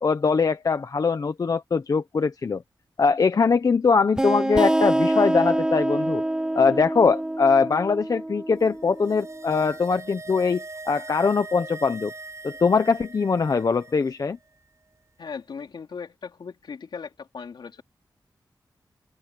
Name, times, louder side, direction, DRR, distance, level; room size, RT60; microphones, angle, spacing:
voice 1, 0.0-2.6 3.0-6.2 6.5-12.1 12.4-14.4, left 5 dB, 55° left, 1.0 m, -22 dB
sound 1, 4.2-9.5, right 1 dB, 10° right, 0.4 m, -26 dB
sound 2, 8.7-14.1 14.4-14.5, right 3 dB, 40° right, 6.2 m, -41 dB
voice 2, 15.2-17.8, left 5 dB, 85° left, 3.6 m, -38 dB
wide cardioid pair, 105°, 8 cm